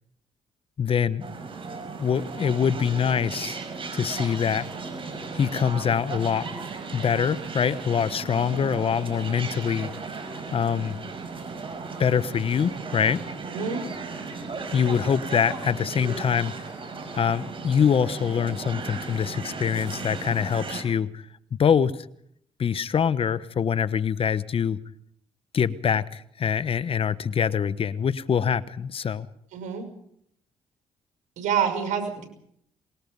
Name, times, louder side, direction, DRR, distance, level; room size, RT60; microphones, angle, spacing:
voice 1, 0.8-1.2 2.0-3.6 3.9-4.7 5.3-6.5 6.9-9.9 10.5-11.0 12.0-13.2 14.7-16.5 17.1-21.2 21.5-22.0 22.6-24.8 25.5-29.3, left 7 dB, 50° left, 16 dB, 1.0 m, -24 dB
sound 1, 1.2-20.8, right 4 dB, 45° right, 5.8 m, -36 dB
voice 2, 29.5-29.8 31.4-32.3, right 7 dB, 80° right, 6 dB, 5.9 m, -26 dB
23.5 x 21.0 x 5.3 m, 0.71 s
supercardioid pair, 70°, 12 cm